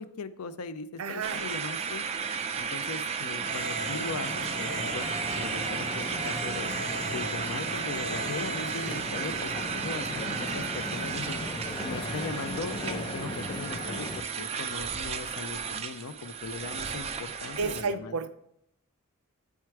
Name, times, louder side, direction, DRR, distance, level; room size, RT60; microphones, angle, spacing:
voice 1, 0.0-2.0 2.6-5.1 5.3-6.7 7.1-11.4 11.8-18.2, left 4 dB, 90° left, 13 dB, 0.5 m, -39 dB
voice 2, 1.0-1.4 17.6-18.3, right 4 dB, 80° right, 11 dB, 0.6 m, -31 dB
sound 1, 1.2-17.8, right 6 dB, 30° right, 0.5 m, -34 dB
sound 2, 3.4-10.1, right 1 dB, 45° left, 2.4 m, -42 dB
sound 3, 3.4-14.2, left 1 dB, 25° left, 0.7 m, -37 dB
8.5 x 4.6 x 4.6 m, 0.76 s
head